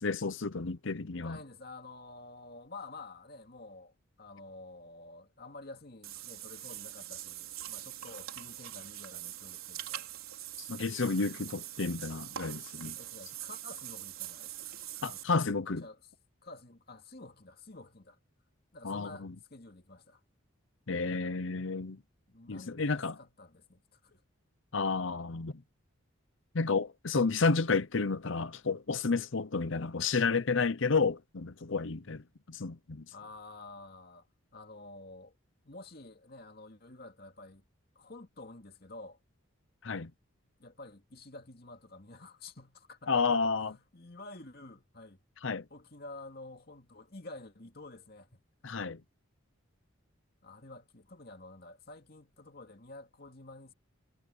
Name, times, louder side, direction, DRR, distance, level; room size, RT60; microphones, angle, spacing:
voice 1, 0.0-1.4 10.6-12.9 15.0-15.8 18.8-19.3 20.9-22.0 22.5-23.1 24.7-25.5 26.5-32.2 32.5-33.0 39.8-40.1 43.1-43.7 45.4-45.6 48.6-49.0, left 4 dB, 65° left, 0.8 m, -31 dB
voice 2, 1.2-10.1 13.0-14.5 15.0-15.2 15.8-16.0 16.4-18.2 18.7-20.2 22.3-24.2 33.1-34.3 34.5-35.3 35.6-37.6 38.0-39.2 40.6-45.2 45.7-48.4 50.4-53.7, left 2 dB, 45° left, 2.5 m, -50 dB
Water / Bathtub (filling or washing), 6.0-15.2, right 12 dB, 85° right, 4.0 m, -43 dB
head